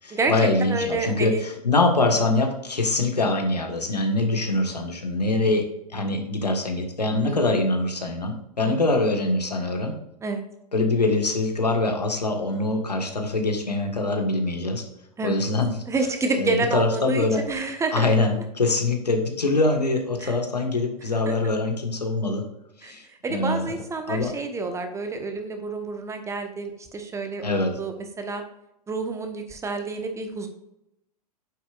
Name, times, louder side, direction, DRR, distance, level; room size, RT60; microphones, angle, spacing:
voice 1, 0.0-5.7 5.9-9.9 10.7-14.8 15.2-15.7 16.4-17.4 17.9-22.4 22.8-23.0 23.3-23.7 24.1-24.3 27.4-27.8, left 2 dB, 85° left, 3 dB, 1.6 m, -23 dB
voice 2, 0.7-1.4 7.2-7.4 8.6-8.8 10.2-10.4 15.2-15.5 15.9-18.1 20.2-20.4 22.8-22.9 23.2-28.4 28.9-30.5, right 3 dB, 15° right, 6 dB, 1.1 m, -29 dB
9.4 x 7.3 x 2.5 m, 0.83 s
figure-of-eight pair, 100°, 20 cm